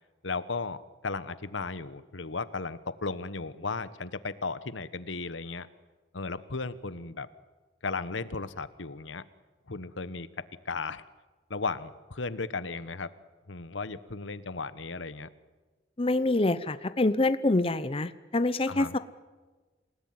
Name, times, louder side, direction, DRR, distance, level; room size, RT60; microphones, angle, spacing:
voice 1, 0.2-0.8 1.0-5.7 6.1-7.3 7.8-9.2 9.7-10.3 10.7-11.0 11.5-13.1 13.5-15.3 18.7-18.9, left 4 dB, 80° left, 15 dB, 1.2 m, -35 dB
voice 2, 16.0-19.0, left 2 dB, 30° left, 13 dB, 0.8 m, -26 dB
28.0 x 18.0 x 9.6 m, 1.3 s
head